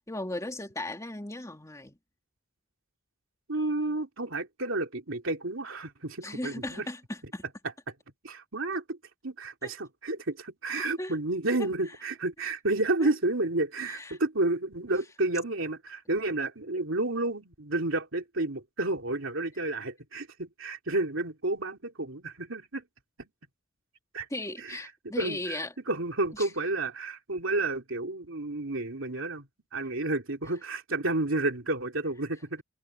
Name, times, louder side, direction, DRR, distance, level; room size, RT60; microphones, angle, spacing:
voice 1, 0.0-2.0 6.2-7.4 9.6-9.7 11.0-11.2 11.6-11.7 13.0-13.1 13.9-14.2 24.3-25.7 26.4-26.5, left 1 dB, 15° left, 2.9 m, -37 dB
voice 2, 3.5-6.9 8.2-9.0 9.2-22.8 23.2-23.3 24.1-24.3 24.6-25.6 25.9-32.6, right 2 dB, 70° right, 3.3 m, -31 dB
head